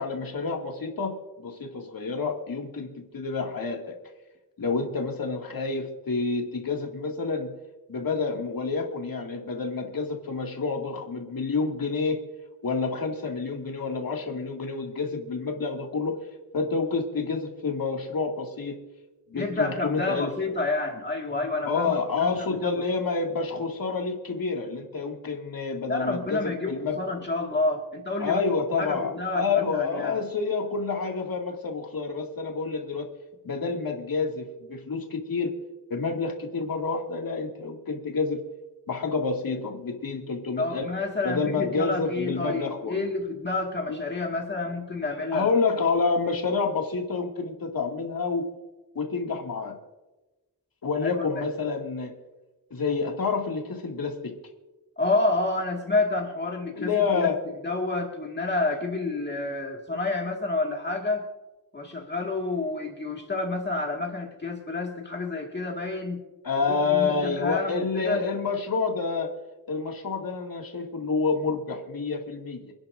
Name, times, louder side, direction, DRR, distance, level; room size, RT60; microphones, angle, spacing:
voice 1, 0.0-3.9 4.6-7.5 7.9-12.2 12.6-16.2 16.5-18.8 19.3-20.3 21.7-27.0 28.2-33.1 33.4-35.5 35.9-38.4 38.9-40.9 41.2-43.0 43.9-44.0 45.3-48.5 49.0-49.8 50.8-52.1 52.7-54.4 56.8-57.4 66.4-69.3 69.7-72.7, left 4 dB, 60° left, 2 dB, 2.2 m, -28 dB
voice 2, 19.3-22.7 25.9-28.4 28.8-30.2 40.6-45.5 51.0-51.5 55.0-57.3 57.6-61.3 61.7-66.2 66.6-68.3, left 2 dB, 25° left, 0 dB, 1.9 m, -29 dB
28.0 x 10.5 x 2.6 m, 1.1 s
wide cardioid pair, 160°, 39 cm